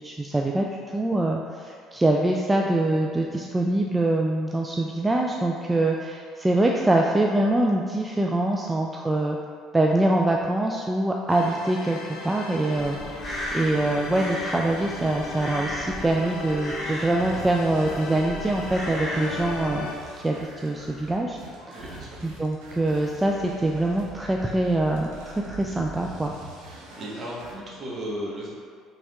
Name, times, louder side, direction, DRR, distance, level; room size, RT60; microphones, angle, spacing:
voice 1, 0.0-9.4 9.7-13.0 13.5-19.9 20.1-21.4 21.7-26.3, right 1 dB, 15° right, 0 dB, 0.3 m, -24 dB
sound 1, 11.3-20.0, left 3 dB, 90° left, 0.5 m, -37 dB
Crow, 12.7-19.6, equal, 10° left, 1.4 m, -36 dB
sound 2, 17.2-27.5, right 2 dB, 85° right, 0.7 m, -43 dB
voice 2, 21.7-22.2 26.6-28.5, equal, 45° right, -5 dB, 1.2 m, -35 dB
5.0 x 3.4 x 2.4 m, 2.1 s
supercardioid pair, 80°, 0 cm